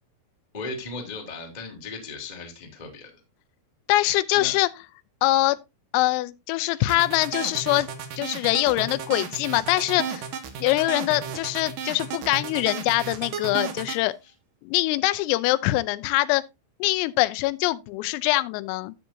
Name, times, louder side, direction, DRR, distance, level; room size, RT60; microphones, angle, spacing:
voice 1, 0.5-3.1 4.3-4.5 6.7-6.9, left 3 dB, 35° left, 0.6 m, -37 dB
voice 2, 3.9-4.7 5.2-5.6 5.9-7.9 8.2-10.2 10.6-14.1 14.6-16.4 16.8-18.9, left 18 dB, 85° left, 3.3 m, -23 dB
sound 1, 6.9-14.0, right 7 dB, 70° right, 2.1 m, -33 dB
13.0 x 7.9 x 2.6 m
omnidirectional pair, 5.9 m